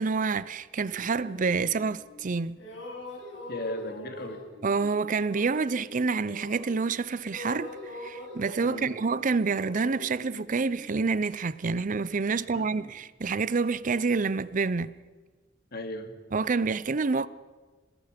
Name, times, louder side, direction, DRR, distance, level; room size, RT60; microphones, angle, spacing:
voice 1, 0.0-2.6 4.6-14.9 16.3-17.3, right 4 dB, 45° right, 0.5 m, -28 dB
sound 1, 0.9-2.3 2.6-7.0 7.2-11.1, left 1 dB, 80° left, 5.9 m, -44 dB
voice 2, 3.5-4.4 8.6-8.9 12.5-12.9 15.7-16.1, left 1 dB, 55° left, 2.4 m, -37 dB
27.0 x 20.0 x 5.1 m
head